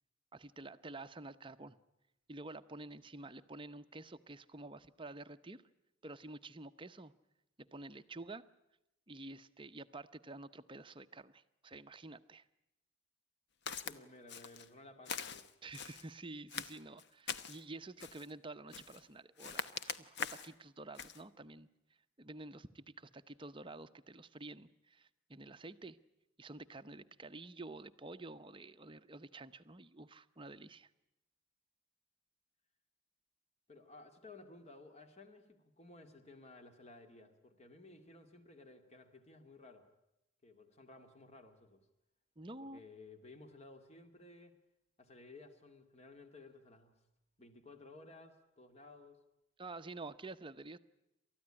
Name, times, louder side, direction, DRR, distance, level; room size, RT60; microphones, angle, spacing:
voice 1, 0.3-1.8 2.3-5.6 6.0-7.1 7.7-8.4 9.1-12.4 15.6-21.7 22.2-26.0 26.4-30.9 42.4-42.8 49.6-50.8, right 2 dB, 25° right, 11 dB, 0.8 m, -49 dB
Walk footsteps, 13.7-14.0 14.3-14.7 15.0-16.1 16.5-17.6 18.0-18.3 18.7-19.0 19.4-20.5 20.9-21.2, left 6 dB, 55° left, 1.0 m, -43 dB
voice 2, 13.8-15.5 33.7-39.9 40.4-41.8 42.6-44.5 45.0-47.0 47.4-49.2, left 2 dB, 30° left, 7 dB, 2.3 m, -56 dB
29.0 x 14.0 x 10.0 m, 0.90 s
head